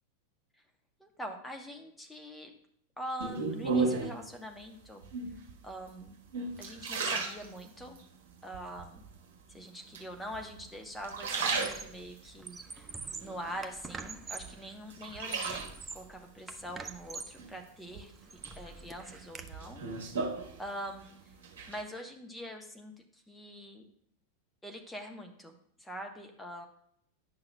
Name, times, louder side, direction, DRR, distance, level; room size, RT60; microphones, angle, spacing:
voice 1, 1.0-2.5 3.0-5.1 5.6-6.2 6.6-8.0 8.4-9.0 9.5-12.9 13.2-18.1 18.6-19.8 20.6-21.2 21.7-23.8 24.6-26.7, equal, 5° left, 3 dB, 1.0 m, -44 dB
sound 1, 3.2-4.3 5.0-5.5 6.1-8.0 8.5-9.1 9.9-10.6 10.9-12.3 12.8-14.0 14.4-16.0 17.4-18.0 18.4-21.0 21.3-21.8, right 4 dB, 60° right, 1.2 m, -35 dB
Squeak, 10.2-10.5 10.8-12.0 12.4-14.6 15.1-16.1 16.5-17.4 17.9-19.5, right 4 dB, 15° right, 0.5 m, -45 dB
10.5 x 5.9 x 2.2 m, 0.70 s
figure-of-eight pair, 90°, 0 cm